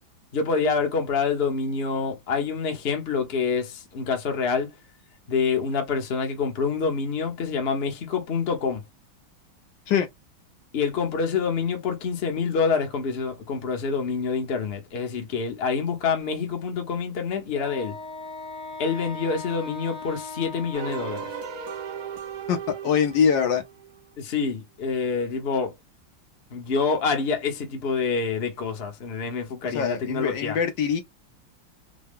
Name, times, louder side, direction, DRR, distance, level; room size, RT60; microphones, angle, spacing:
voice 1, 0.3-4.7 5.3-8.8 10.7-18.0 18.8-21.3 24.2-25.7 26.5-30.6, left 5 dB, 40° left, 1.0 m, -27 dB
Wind instrument woodwind instrument, 17.5-22.2, left 3 dB, 5° left, 0.7 m, -39 dB
sound 1, 20.7-24.0, right 8 dB, 65° right, 1.2 m, -36 dB
voice 2, 22.8-23.6 29.7-31.0, left 7 dB, 70° left, 1.4 m, -23 dB
3.8 x 2.1 x 3.5 m
omnidirectional pair, 2.1 m